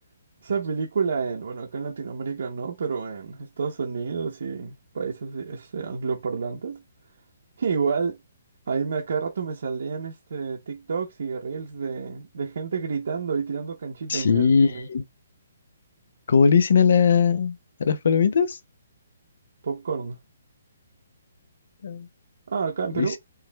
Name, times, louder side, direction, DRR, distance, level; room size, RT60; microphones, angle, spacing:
voice 1, 0.4-6.8 7.6-8.2 8.7-14.9 19.6-20.2 22.5-23.2, right 5 dB, 55° right, 0.7 m, -29 dB
voice 2, 14.1-15.0 16.3-18.6 21.8-22.1 22.9-23.1, left 6 dB, 55° left, 0.5 m, -20 dB
4.6 x 3.2 x 2.2 m
hypercardioid pair, 175°, 0 cm